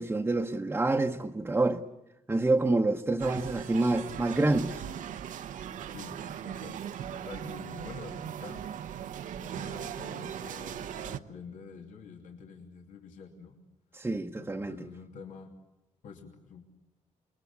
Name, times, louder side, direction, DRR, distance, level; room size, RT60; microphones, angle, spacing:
voice 1, 0.0-1.8 2.3-4.8 13.9-14.8, right 2 dB, 15° right, 1.0 m, -27 dB
sound 1, 3.2-11.2, right 9 dB, 80° right, 1.0 m, -39 dB
voice 2, 6.4-6.8 7.1-8.6 9.4-13.6 14.4-15.5 16.0-16.6, left 6 dB, 85° left, 2.9 m, -47 dB
28.0 x 22.0 x 8.4 m
cardioid pair, 120°, 13 cm